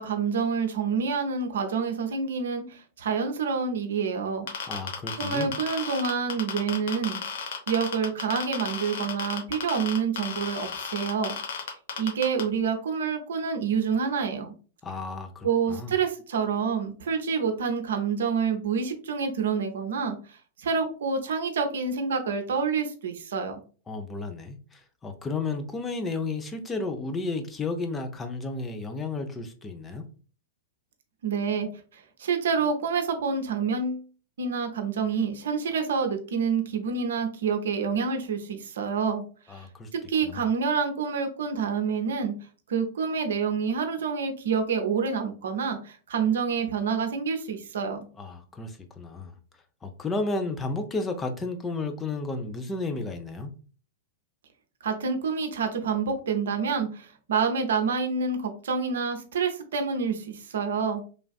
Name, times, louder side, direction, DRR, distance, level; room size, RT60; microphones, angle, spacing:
voice 1, 0.0-4.5 5.2-7.3 7.7-11.4 12.0-14.5 15.4-23.6 31.2-34.0 34.4-39.2 39.5-39.6 40.1-42.3 42.7-48.0 54.8-61.0, right 5 dB, 65° right, 5 dB, 0.5 m, -28 dB
sound 1, 4.5-12.4, left 7 dB, 60° left, 0.8 m, -33 dB
voice 2, 4.7-5.5 14.8-15.9 23.9-30.0 39.5-39.9 40.2-40.4 48.2-49.3 49.8-53.5, left 3 dB, 15° left, 6 dB, 0.4 m, -32 dB
3.2 x 2.4 x 2.3 m, 0.38 s
figure-of-eight pair, 100°, 0 cm